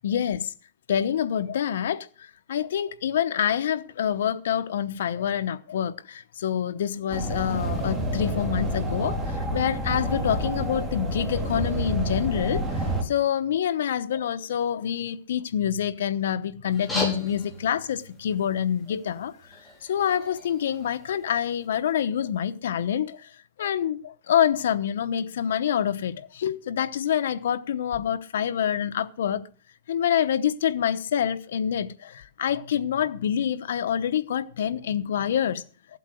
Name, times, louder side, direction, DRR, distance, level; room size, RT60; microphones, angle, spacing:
voice 1, 0.0-0.5 0.9-23.3 23.6-29.5 29.9-35.6, left 9 dB, 85° left, 0.9 m, -27 dB
sound 1, 7.1-13.0, right 1 dB, 15° right, 2.6 m, -28 dB
sound 2, 16.7-21.7, left 1 dB, 5° left, 4.4 m, -37 dB
15.0 x 8.2 x 6.3 m
supercardioid pair, 150°, 0 cm